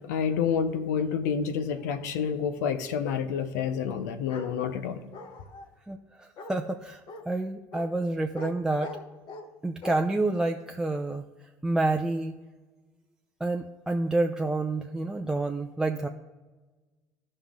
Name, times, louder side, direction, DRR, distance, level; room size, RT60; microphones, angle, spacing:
voice 1, 0.1-5.0, left 7 dB, 80° left, 8 dB, 0.7 m, -28 dB
Bark, 4.3-4.5 5.1-5.7 6.4-6.6 7.1-7.2 7.7-7.9 8.3-8.5 8.8-9.5 9.8-10.0, left 2 dB, 60° left, 1.0 m, -41 dB
voice 2, 5.9-7.0 7.3-8.9 9.6-11.2 11.6-12.3 13.4-16.1, right 2 dB, 5° right, 2 dB, 0.6 m, -28 dB
14.0 x 5.4 x 3.6 m, 1.3 s
hypercardioid pair, 70°, 9 cm